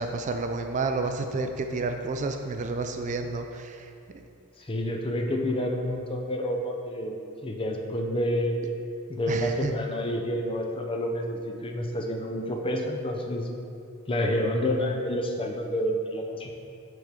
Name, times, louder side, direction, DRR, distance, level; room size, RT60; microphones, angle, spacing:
voice 1, 0.0-3.9 9.3-9.7, right 3 dB, 35° right, 6 dB, 0.3 m, -30 dB
voice 2, 4.7-7.2 7.4-8.7 9.1-13.5 14.1-16.5, equal, 25° left, 2 dB, 0.6 m, -29 dB
6.0 x 3.7 x 5.7 m, 2.5 s
head